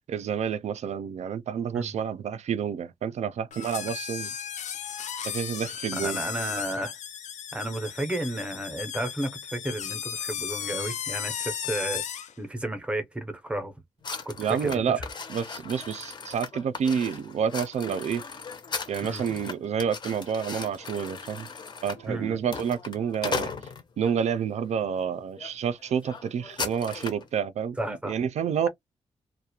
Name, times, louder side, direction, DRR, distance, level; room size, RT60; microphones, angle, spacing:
voice 1, 0.1-4.3 5.2-6.2 14.4-15.0 15.3-18.2 18.9-21.5 21.8-23.5 24.0-28.7, right 7 dB, 70° right, 0.4 m, -29 dB
sound 1, 3.5-12.3, left 8 dB, 85° left, 0.4 m, -35 dB
voice 2, 5.9-6.9 7.5-12.0 12.4-13.7 14.3-14.4 14.6-14.8 19.0-19.3 22.1-22.4 27.8-28.2, right 1 dB, 10° right, 0.5 m, -32 dB
sound 2, 14.0-24.2 24.8-25.0 25.4-25.5 25.8-27.3, left 5 dB, 40° left, 0.5 m, -37 dB
2.4 x 2.1 x 2.7 m
wide cardioid pair, 175°, 12 cm